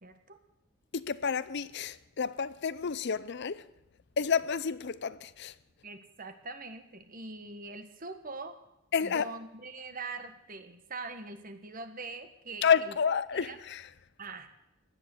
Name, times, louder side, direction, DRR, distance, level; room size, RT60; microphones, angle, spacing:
voice 1, 0.0-0.4 5.8-8.6 9.0-12.9 13.3-13.6 14.2-14.5, right 3 dB, 45° right, 1.5 m, -43 dB
voice 2, 0.9-3.7 4.2-5.5 8.9-9.3 12.6-13.9, left 6 dB, 55° left, 0.6 m, -30 dB
16.5 x 11.0 x 7.9 m
head